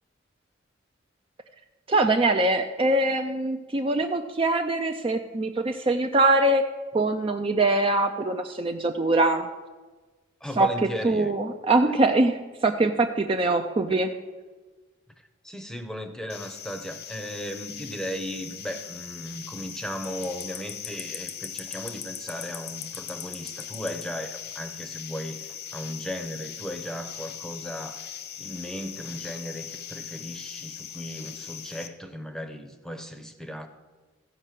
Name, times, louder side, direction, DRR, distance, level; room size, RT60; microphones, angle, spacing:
voice 1, 1.9-6.6 6.9-9.5 10.6-10.7 11.0-14.1, right 2 dB, 25° right, 5 dB, 0.4 m, -23 dB
voice 2, 10.4-11.3 15.4-28.0 28.4-33.7, equal, 5° left, 7 dB, 0.8 m, -36 dB
sound 1, 16.3-31.9, left 8 dB, 50° left, 0.8 m, -39 dB
15.0 x 5.4 x 7.5 m, 1.3 s
head